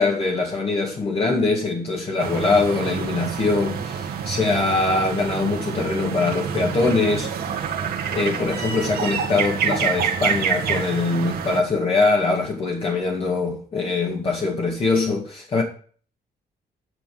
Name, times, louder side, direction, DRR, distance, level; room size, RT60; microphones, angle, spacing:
voice 1, 0.0-7.3 8.1-15.6, left 3 dB, 35° left, 2.0 m, -22 dB
sound 1, 2.2-11.6, right 7 dB, 65° right, 1.8 m, -27 dB
10.0 x 6.0 x 7.6 m
cardioid pair, 150°, 17 cm